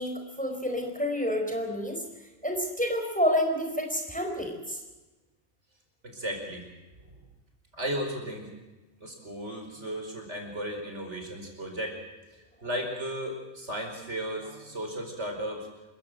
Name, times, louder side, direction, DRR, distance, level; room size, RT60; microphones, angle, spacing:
voice 1, 0.0-2.0 2.4-4.8, equal, 5° left, 3 dB, 4.4 m, -29 dB
voice 2, 6.0-6.6 7.0-7.1 7.7-8.5 9.0-12.0 12.6-15.7, equal, 65° right, 3 dB, 5.1 m, -35 dB
28.0 x 15.5 x 7.9 m, 1.1 s
omnidirectional pair, 1.3 m